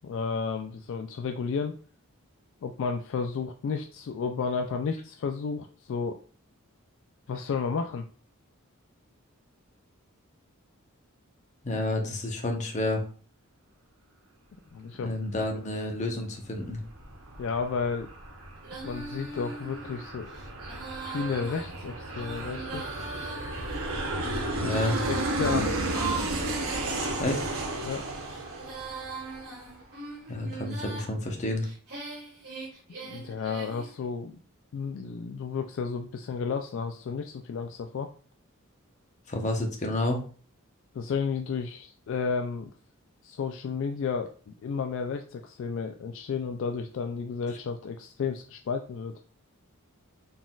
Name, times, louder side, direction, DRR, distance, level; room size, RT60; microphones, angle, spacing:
voice 1, 0.0-1.8 2.6-6.2 7.3-8.0 14.7-15.1 17.4-18.1 18.8-20.3 20.9-22.8 24.1-24.8 25.1-25.9 27.9-28.0 33.0-34.4 34.7-38.1 40.9-42.7 43.2-49.1, left 5 dB, 60° left, 5 dB, 0.3 m, -32 dB
voice 2, 11.6-13.0 15.0-16.8 24.6-25.0 27.2-27.5 30.3-31.7 39.3-40.2, left 1 dB, 35° left, 2 dB, 0.8 m, -29 dB
Aircraft, 16.5-29.7, right 2 dB, 65° right, 0.8 m, -33 dB
Female singing, 18.6-27.5 28.1-31.1 31.6-33.9, right 3 dB, 50° right, 1.9 m, -40 dB
4.1 x 3.7 x 2.3 m, 0.40 s
head